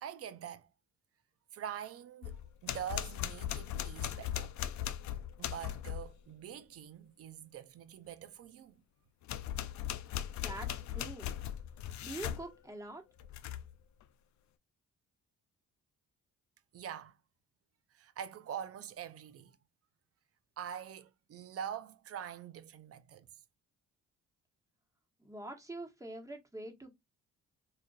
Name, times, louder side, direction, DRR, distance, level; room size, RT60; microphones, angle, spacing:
voice 1, 0.0-0.7 1.5-4.6 5.4-8.8 16.7-17.2 17.9-19.6 20.6-23.3, right 9 dB, 50° right, 0.5 m, -44 dB
sound 1, 2.2-6.1 9.2-12.5 13.2-13.7, left 11 dB, 70° left, 0.5 m, -39 dB
voice 2, 10.4-11.3 12.0-13.0 25.2-27.0, right 2 dB, 10° right, 1.2 m, -45 dB
4.1 x 2.4 x 2.4 m
cardioid pair, 90°, 30 cm